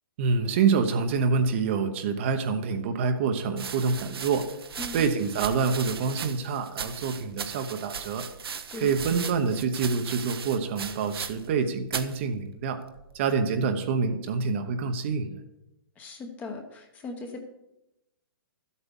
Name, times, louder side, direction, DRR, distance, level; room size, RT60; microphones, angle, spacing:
voice 1, 0.2-4.5 4.9-8.2 8.8-12.8 13.1-15.4, right 5 dB, 30° right, 6 dB, 0.9 m, -26 dB
sound 1, 3.5-11.6 11.9-12.2 12.9-13.4, right 6 dB, 80° right, 1.1 m, -37 dB
voice 2, 4.8-5.1 8.7-8.9 16.0-17.4, left 3 dB, 10° left, 4 dB, 1.0 m, -38 dB
12.5 x 8.3 x 5.4 m, 0.88 s
hypercardioid pair, 170°, 12 cm